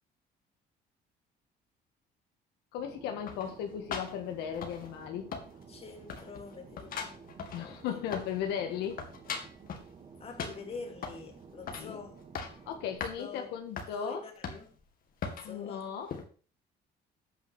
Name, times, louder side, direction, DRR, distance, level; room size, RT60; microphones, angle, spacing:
voice 1, 2.7-5.3 7.5-9.0 11.7-12.0 12.7-14.2 15.4-16.1, left 8 dB, 90° left, 1.7 m, -36 dB
Fixed-wing aircraft airplane, 2.8-13.0, right 5 dB, 40° right, 1.8 m, -53 dB
sound 1, 3.3-5.1 5.3-5.8 6.1-8.5 8.8-9.9 10.4-11.3 11.7-11.9 12.2-12.6 13.0-13.2 13.8-13.9 14.4-14.8 15.2-15.5 16.1-16.2, left 6 dB, 60° left, 2.1 m, -40 dB
voice 2, 5.7-8.1 10.1-12.2 13.2-13.5 13.9-14.7 15.3-15.9, left 4 dB, 35° left, 2.4 m, -45 dB
9.0 x 5.4 x 6.3 m
cardioid pair, 110°, 17 cm